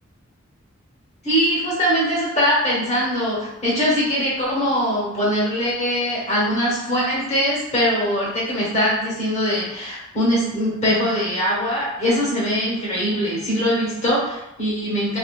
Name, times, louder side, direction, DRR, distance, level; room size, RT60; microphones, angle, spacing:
voice 1, 1.2-15.2, equal, 30° left, -6 dB, 1.1 m, -22 dB
3.4 x 2.6 x 2.3 m, 0.89 s
head